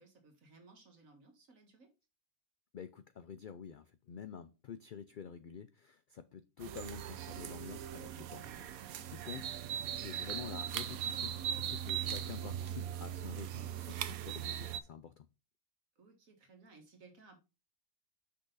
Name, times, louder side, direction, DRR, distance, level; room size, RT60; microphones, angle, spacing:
voice 1, 0.0-1.9 16.0-17.4, right 3 dB, 70° right, 2.1 m, -60 dB
voice 2, 2.7-8.6 9.0-15.3, left 7 dB, 70° left, 0.4 m, -48 dB
sound 1, 6.6-14.8, right 10 dB, 90° right, 1.1 m, -39 dB
6.3 x 5.6 x 3.9 m
omnidirectional pair, 1.4 m